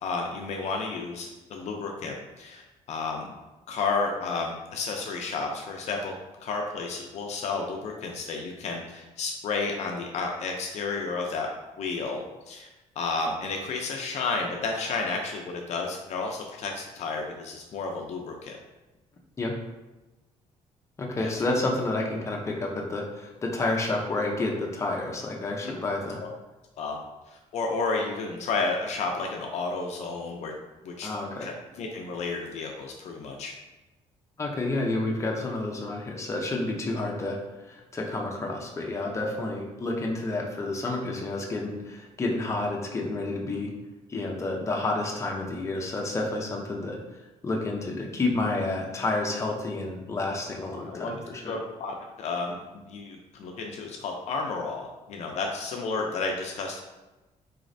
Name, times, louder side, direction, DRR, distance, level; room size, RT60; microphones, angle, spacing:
voice 1, 0.0-2.6 2.9-3.3 3.7-6.1 6.4-11.5 11.8-12.7 13.0-18.6 21.1-21.3 26.2-26.3 26.8-27.0 27.3-30.5 30.8-31.1 31.4-33.5 50.9-51.2 51.4-56.8, left 4 dB, 65° left, 1 dB, 0.5 m, -32 dB
voice 2, 21.0-26.2 31.0-31.5 34.4-37.4 37.7-43.7 44.1-47.0 47.4-51.6, left 2 dB, 25° left, -1 dB, 0.7 m, -30 dB
4.0 x 3.0 x 2.6 m, 1.1 s
cardioid pair, 120°, 13 cm